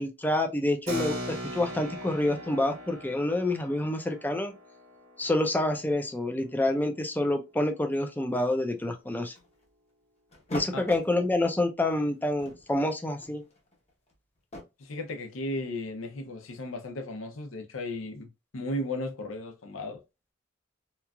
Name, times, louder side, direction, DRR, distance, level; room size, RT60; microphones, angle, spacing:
voice 1, 0.0-4.5 5.2-9.3 10.5-13.4, left 1 dB, 10° left, 0.4 m, -28 dB
Keyboard (musical), 0.9-6.9, equal, 75° right, 1.2 m, -40 dB
sound 1, 8.8-9.6 10.3-11.1 11.9-12.0 12.3-14.6, left 1 dB, 35° left, 0.8 m, -42 dB
voice 2, 14.8-18.3 18.5-20.0, left 1 dB, 85° left, 0.7 m, -35 dB
3.0 x 2.4 x 2.2 m
head